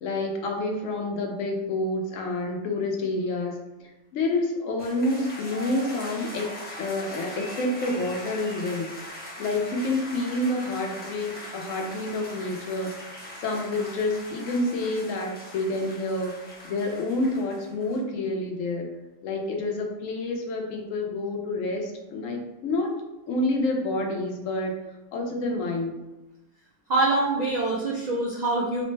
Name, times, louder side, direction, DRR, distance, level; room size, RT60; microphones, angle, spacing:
voice 1, 0.0-3.6 4.1-8.9 9.4-12.9 13.4-16.3 16.6-18.9 19.2-23.0 23.3-24.7 25.1-26.0, left 2 dB, 80° left, 1 dB, 1.0 m, -28 dB
sound 1, 4.8-18.0, left 1 dB, 15° left, 0.4 m, -41 dB
voice 2, 26.9-28.8, right 2 dB, 65° right, -5 dB, 0.4 m, -24 dB
3.2 x 2.1 x 3.2 m, 1.0 s
omnidirectional pair, 1.4 m